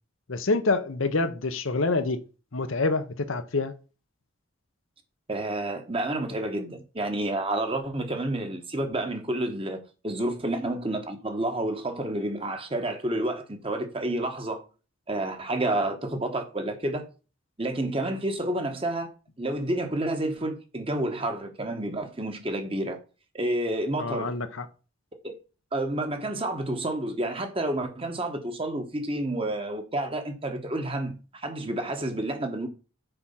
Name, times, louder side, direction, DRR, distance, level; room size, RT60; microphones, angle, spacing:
voice 1, 0.3-2.2 2.5-3.7 24.0-24.7, left 3 dB, 70° left, 0.8 m, -26 dB
voice 2, 5.3-9.8 10.0-14.6 15.1-17.1 17.6-23.0 23.3-24.3 25.2-25.3 25.7-32.7, right 1 dB, 25° right, 1.2 m, -29 dB
6.8 x 4.9 x 5.6 m
head